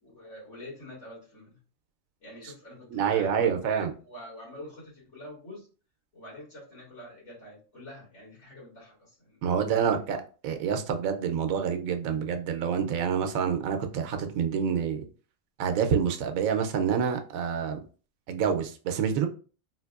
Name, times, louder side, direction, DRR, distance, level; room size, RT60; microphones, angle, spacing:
voice 1, 0.0-1.6 2.2-5.7 6.1-9.4 9.7-10.0, left 1 dB, 70° left, -8 dB, 2.3 m, -46 dB
voice 2, 2.9-3.9 9.4-10.2 10.4-15.0 15.6-17.8 18.3-19.3, right 7 dB, 85° right, 6 dB, 1.0 m, -27 dB
3.9 x 2.5 x 2.3 m, 0.37 s
omnidirectional pair, 1.4 m